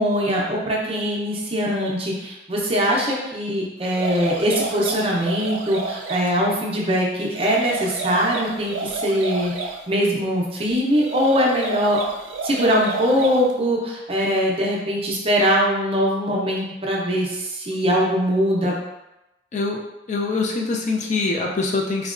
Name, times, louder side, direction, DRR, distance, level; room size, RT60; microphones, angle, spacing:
voice 1, 0.0-12.0 12.4-18.7, equal, 30° right, -2 dB, 0.5 m, -22 dB
sound 1, 3.8-6.3 7.3-9.8 10.9-13.5, right 4 dB, 85° right, 0.3 m, -30 dB
voice 2, 19.5-22.1, left 3 dB, 40° left, -1 dB, 0.3 m, -24 dB
3.8 x 2.2 x 2.4 m, 0.94 s
head